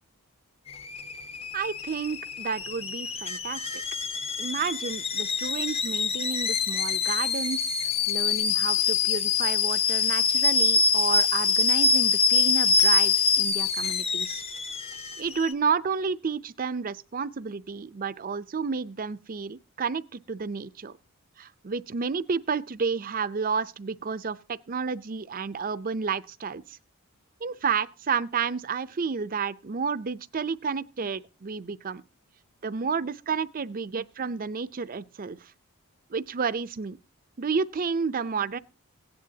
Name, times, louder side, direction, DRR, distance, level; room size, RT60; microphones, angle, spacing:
Alarm / Boiling, 0.7-15.5, left 5 dB, 25° left, 0.7 m, -25 dB
voice 1, 1.5-3.8 4.4-14.4 15.2-21.0 21.4-26.8 27.4-32.0 32.6-35.5 36.1-37.0 37.4-38.6, right 5 dB, 40° right, 0.5 m, -31 dB
17.0 x 10.5 x 2.8 m
head